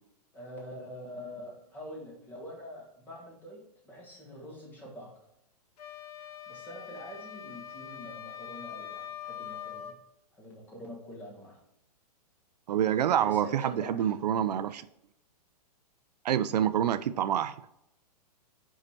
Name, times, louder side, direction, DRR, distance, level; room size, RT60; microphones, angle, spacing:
voice 1, 0.3-5.2 6.5-10.0 10.3-11.6 13.1-14.1, equal, 10° left, -2 dB, 1.2 m, -45 dB
sound 1, 5.8-10.0, left 9 dB, 70° left, 0.9 m, -43 dB
voice 2, 12.7-14.9 16.2-17.5, right 10 dB, 80° right, 13 dB, 0.5 m, -27 dB
5.1 x 4.9 x 4.2 m, 0.83 s
hypercardioid pair, 170°, 21 cm